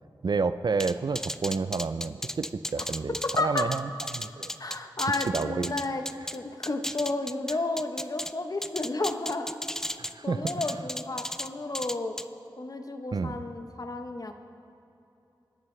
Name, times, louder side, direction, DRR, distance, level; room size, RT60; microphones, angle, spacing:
voice 1, 0.2-4.5 5.2-5.7 10.0-10.8 13.1-13.4, right 4 dB, 60° right, 13 dB, 0.4 m, -30 dB
sound 1, 0.8-6.4 6.6-8.3 8.6-10.1 10.5-11.5 11.7-12.2, left 1 dB, 5° left, 0.4 m, -35 dB
voice 2, 3.4-3.7 4.6-6.0 6.3-9.6 10.2-12.2 12.6-14.3, left 2 dB, 45° left, 6 dB, 0.9 m, -32 dB
21.5 x 7.5 x 3.3 m, 2.9 s
cardioid pair, 45°, 8 cm